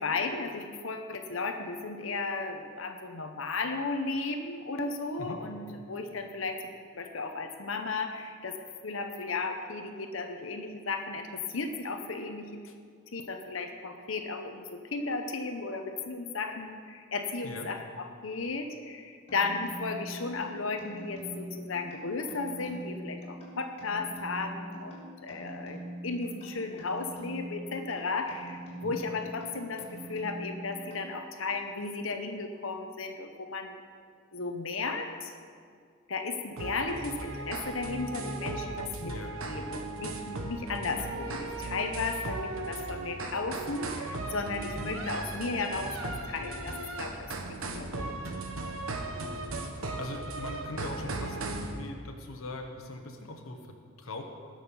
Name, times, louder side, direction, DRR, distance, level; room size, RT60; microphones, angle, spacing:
voice 1, 0.0-6.6 6.9-12.7 13.1-33.8 34.3-35.3 36.1-39.1 39.5-48.2, left 3 dB, 70° left, 5 dB, 0.9 m, -35 dB
sound 1, 19.3-31.5, right 1 dB, 30° left, 3.5 m, -43 dB
sound 2, 36.6-51.7, right 2 dB, 80° right, 1.2 m, -37 dB
voice 2, 39.0-39.3 44.8-44.9 49.2-54.2, left 2 dB, 85° left, 3 dB, 1.1 m, -41 dB
19.0 x 6.5 x 5.5 m, 2.1 s
head